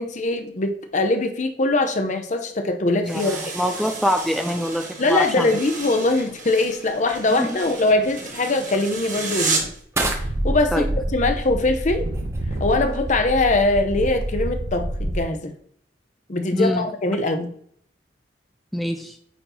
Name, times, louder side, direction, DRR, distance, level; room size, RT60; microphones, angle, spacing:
voice 1, 0.0-3.5 5.0-9.7 10.4-10.9 11.1-12.1 12.6-15.5 16.3-17.5, left 2 dB, 40° left, 6 dB, 0.7 m, -22 dB
voice 2, 3.0-5.6 7.4-7.6 10.7-10.9 16.5-16.9 18.7-19.2, equal, ahead, 5 dB, 0.3 m, -24 dB
sound 1, 3.0-9.8, right 4 dB, 45° right, 1.4 m, -32 dB
sound 2, 5.6-14.8, right 2 dB, 15° right, 0.8 m, -37 dB
sound 3, 10.0-15.2, right 1 dB, 70° right, 0.8 m, -27 dB
9.1 x 4.4 x 2.8 m, 0.63 s
head